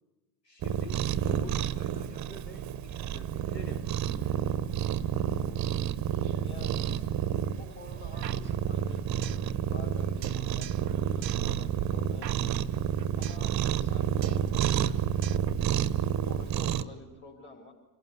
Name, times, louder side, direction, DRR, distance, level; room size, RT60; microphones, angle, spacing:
voice 1, 0.4-4.0 6.8-7.0, left 2 dB, 90° left, 9 dB, 2.1 m, -48 dB
Cat, 0.6-16.8, right 10 dB, 35° right, 1.1 m, -30 dB
voice 2, 5.3-5.7 6.4-7.1 7.6-9.1 9.3-12.6 13.2-14.8 15.3-15.6 16.0-17.7, left 4 dB, 20° left, -2 dB, 4.7 m, -49 dB
sound 1, 8.2-9.5 9.8-9.9 10.2-10.9 11.2-13.5 13.7-14.0 14.2-14.9 15.2-16.2, right 11 dB, 85° right, 0.7 m, -42 dB
27.0 x 18.0 x 8.3 m, 1.1 s
figure-of-eight pair, 70°, 48 cm